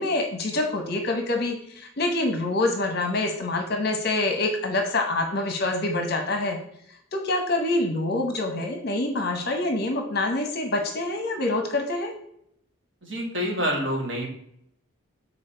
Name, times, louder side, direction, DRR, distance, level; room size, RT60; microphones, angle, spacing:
voice 1, 0.0-6.6 7.1-12.1, left 2 dB, 45° left, 4 dB, 0.8 m, -26 dB
voice 2, 13.0-14.3, equal, 60° right, -1 dB, 1.9 m, -27 dB
7.0 x 4.0 x 4.4 m, 0.72 s
head